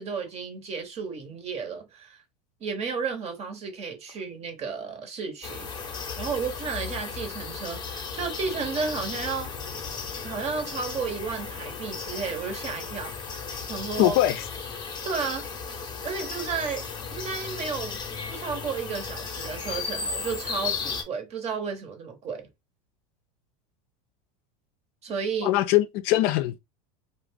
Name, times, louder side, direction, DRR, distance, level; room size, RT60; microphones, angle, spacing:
voice 1, 0.0-2.2 2.6-5.7 6.2-9.5 10.2-13.1 13.7-14.1 15.0-15.5 16.0-18.0 18.3-22.5 25.0-25.5, right 5 dB, 35° right, 0.9 m, -32 dB
sound 1, 5.4-21.0, left 5 dB, 20° left, 0.7 m, -35 dB
voice 2, 14.0-14.4 25.4-26.6, left 15 dB, 55° left, 0.4 m, -22 dB
2.4 x 2.0 x 3.5 m
supercardioid pair, 110°, 19 cm